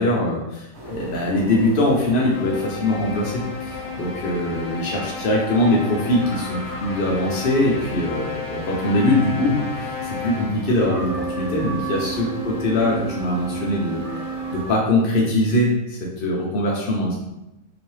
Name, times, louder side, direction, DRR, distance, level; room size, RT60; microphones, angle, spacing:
voice 1, 0.0-14.0 14.4-17.2, left 1 dB, 60° left, -4 dB, 0.6 m, -22 dB
sound 1, 0.7-14.7, right 1 dB, 55° right, 1.5 m, -38 dB
sound 2, 2.3-10.8, left 4 dB, 80° left, 1.0 m, -33 dB
Wind instrument woodwind instrument, 10.7-14.7, right 5 dB, 80° right, 1.3 m, -31 dB
3.0 x 2.8 x 3.1 m, 0.94 s
omnidirectional pair, 1.5 m